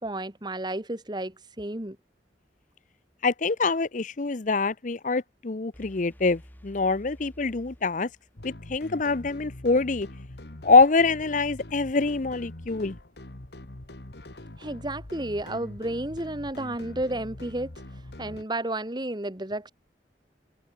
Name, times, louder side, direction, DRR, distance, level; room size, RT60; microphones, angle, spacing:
voice 1, 0.0-2.0 14.6-17.8 18.2-19.7, right 1 dB, 25° right, 1.9 m, -32 dB
voice 2, 3.2-8.1 8.4-10.1 10.6-12.9, left 4 dB, 45° left, 0.7 m, -24 dB
sound 1, 5.7-8.6, equal, 10° left, 2.0 m, -51 dB
sound 2, 8.4-18.4, left 1 dB, 65° left, 1.8 m, -43 dB
head